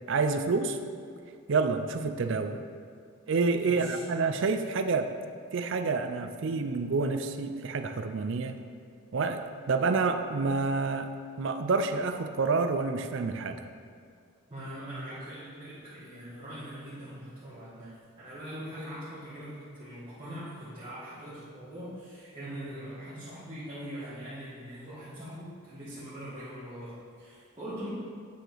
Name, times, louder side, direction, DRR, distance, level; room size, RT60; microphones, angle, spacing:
voice 1, 0.1-0.8 1.5-2.6 3.3-5.1 5.5-8.6 9.1-11.1 11.4-13.6, right 4 dB, 55° right, 8 dB, 0.4 m, -28 dB
voice 2, 3.6-4.0 14.5-27.9, equal, 20° right, -13 dB, 1.6 m, -42 dB
9.1 x 4.9 x 3.9 m, 2.2 s
head